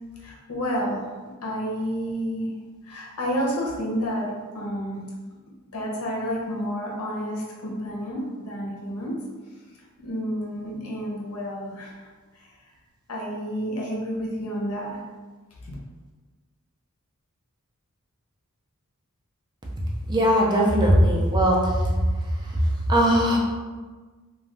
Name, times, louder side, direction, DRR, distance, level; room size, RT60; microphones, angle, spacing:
voice 1, 0.2-1.0 1.4-2.5 2.8-5.0 5.7-9.2 10.0-12.1 12.3-12.5 13.1-15.0 15.6-15.7, equal, 80° left, -3 dB, 0.7 m, -30 dB
voice 2, 20.1-21.9 22.4-23.4, equal, 20° right, -2 dB, 0.4 m, -20 dB
2.5 x 2.2 x 3.3 m, 1.4 s
head